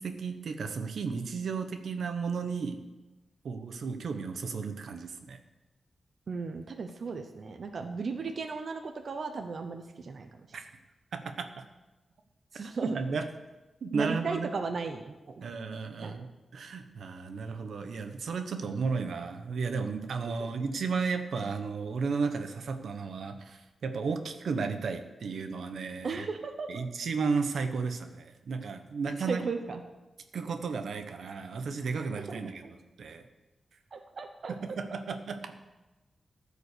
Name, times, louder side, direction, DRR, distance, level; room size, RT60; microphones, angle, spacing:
voice 1, 0.0-2.8 3.4-5.4 10.5-10.7 11.1-11.6 12.8-13.3 13.8-14.5 15.4-16.3 16.5-26.2 26.7-29.4 30.3-33.2 34.5-35.5, right 5 dB, 85° right, 7 dB, 0.9 m, -34 dB
voice 2, 6.3-10.3 12.5-13.0 13.9-15.4 16.0-16.3 20.4-20.7 26.0-26.8 29.3-29.8 32.1-32.2 32.6-32.7 33.9-34.5, right 4 dB, 55° right, 6 dB, 0.7 m, -36 dB
14.0 x 5.1 x 6.7 m, 1.1 s
wide cardioid pair, 165°, 0 cm